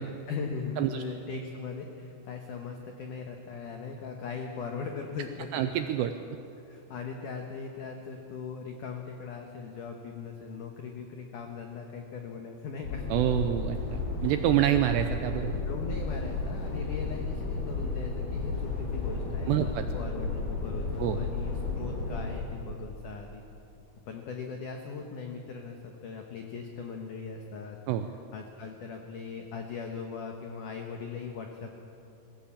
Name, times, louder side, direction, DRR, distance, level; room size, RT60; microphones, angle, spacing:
voice 1, 0.0-5.7 6.7-13.0 15.6-23.4 24.1-27.8 28.3-31.7, left 5 dB, 85° left, 3 dB, 1.8 m, -39 dB
voice 2, 5.5-6.1 13.1-15.6 19.5-19.8 21.0-21.2 27.9-28.1, right 12 dB, 85° right, 8 dB, 2.5 m, -27 dB
sound 1, 12.8-22.4, left 3 dB, 35° left, 4.7 m, -33 dB
21.0 x 16.0 x 8.7 m, 2.8 s
omnidirectional pair, 5.6 m